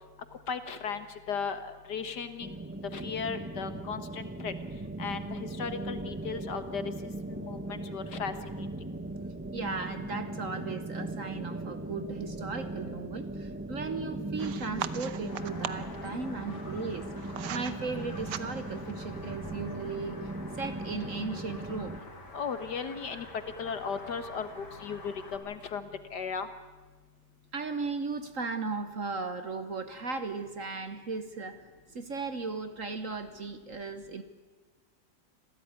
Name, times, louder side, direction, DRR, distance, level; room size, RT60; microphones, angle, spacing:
voice 1, 0.5-2.6 2.9-4.5 5.0-6.8 7.3-8.7 22.3-23.3 23.6-26.5, left 6 dB, 60° left, 10 dB, 1.9 m, -36 dB
sound 1, 2.4-22.0, right 2 dB, 10° right, 0.5 m, -39 dB
voice 2, 9.5-20.3 20.6-21.9 27.5-34.2, right 4 dB, 45° right, 10 dB, 1.3 m, -36 dB
sound 2, 14.4-16.0 16.8-17.8 18.1-18.8, right 10 dB, 65° right, 1.4 m, -39 dB
sound 3, 15.3-25.3, left 2 dB, 80° left, 3.9 m, -48 dB
26.5 x 16.0 x 9.6 m, 1.3 s
omnidirectional pair, 2.1 m